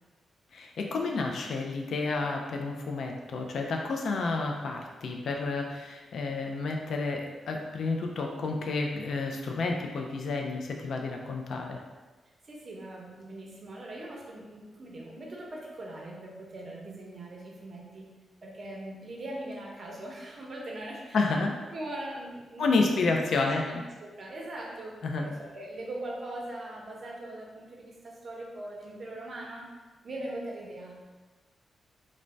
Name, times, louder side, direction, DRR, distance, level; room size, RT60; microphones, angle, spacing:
voice 1, 0.5-11.8 21.1-21.5 22.6-23.8 25.0-25.3, left 3 dB, 70° left, 2 dB, 0.3 m, -30 dB
voice 2, 12.5-18.1 18.4-21.5 21.7-23.1 23.6-29.7 30.0-30.9, right 1 dB, 50° right, -3 dB, 0.7 m, -41 dB
2.5 x 2.1 x 3.2 m, 1.3 s
cardioid pair, 100°, 0 cm